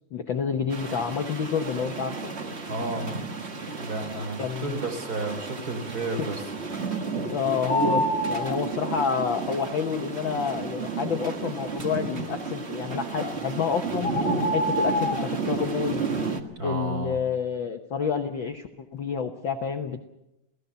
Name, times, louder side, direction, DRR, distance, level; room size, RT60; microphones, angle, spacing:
voice 1, 0.1-2.1 4.4-4.8 7.3-14.1 14.5-16.0 16.6-20.1, left 6 dB, 80° left, 6 dB, 1.0 m, -29 dB
sound 1, 0.7-16.4, right 4 dB, 45° right, 0.8 m, -32 dB
voice 2, 2.7-3.2 3.7-6.4 16.6-17.2, right 2 dB, 30° right, 7 dB, 3.5 m, -32 dB
sound 2, 7.7-8.6 13.2-13.3 14.0-15.3, equal, 65° left, 2.4 m, -26 dB
28.5 x 18.0 x 6.9 m, 0.93 s
omnidirectional pair, 3.8 m